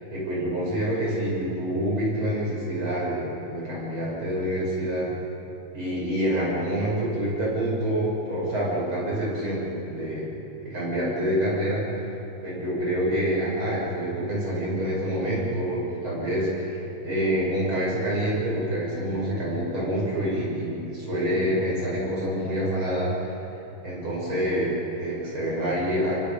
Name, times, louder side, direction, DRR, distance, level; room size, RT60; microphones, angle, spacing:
voice 1, 0.1-5.1 5.7-10.3 10.6-11.8 12.4-23.4 23.8-26.2, equal, 75° right, -6 dB, 7.8 m, -27 dB
26.5 x 24.0 x 5.3 m, 2.9 s
omnidirectional pair, 2.3 m